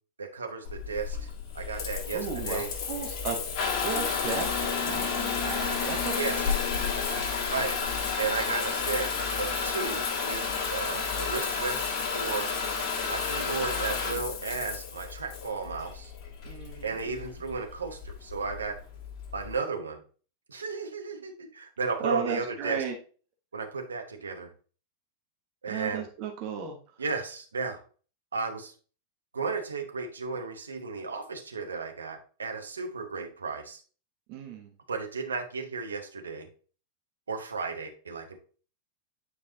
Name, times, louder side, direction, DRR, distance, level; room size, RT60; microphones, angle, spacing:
voice 1, 0.2-1.3 1.5-2.7 6.2-6.4 7.5-7.8 8.2-9.1 9.4-12.5 13.1-16.1 16.8-18.8 19.3-20.0 20.5-22.8 23.5-24.5 25.6-26.1 27.0-27.8 28.3-28.7 29.3-33.8 34.9-36.5 37.3-38.4, right 4 dB, 75° right, 4 dB, 1.2 m, -34 dB
Water tap faucet / Bathtub (filling or washing) / Trickle dribble, 0.6-19.5, left 5 dB, 35° left, 1.7 m, -31 dB
voice 2, 2.1-3.4 3.8-7.5 16.4-17.3 22.0-22.9 25.7-26.8 34.3-34.7, right 5 dB, 45° right, 2 dB, 1.3 m, -35 dB
9.4 x 4.6 x 2.9 m, 0.39 s
figure-of-eight pair, 90°, 0 cm